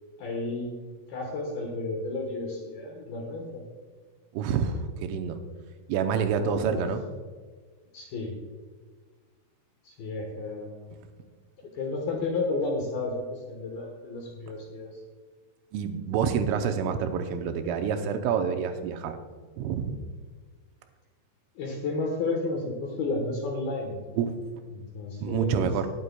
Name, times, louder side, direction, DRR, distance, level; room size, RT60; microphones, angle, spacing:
voice 1, 0.2-0.7 1.1-3.6 6.3-6.9 7.9-8.4 9.8-10.9 11.7-15.0 21.6-24.0 24.7-25.7, left 3 dB, 70° left, 1 dB, 2.4 m, -32 dB
voice 2, 4.3-5.4 5.9-7.0 15.7-19.2 19.6-20.0 24.2-24.3 25.2-25.9, right 7 dB, 80° right, 6 dB, 3.2 m, -27 dB
20.0 x 9.6 x 2.3 m, 1.5 s
omnidirectional pair, 5.8 m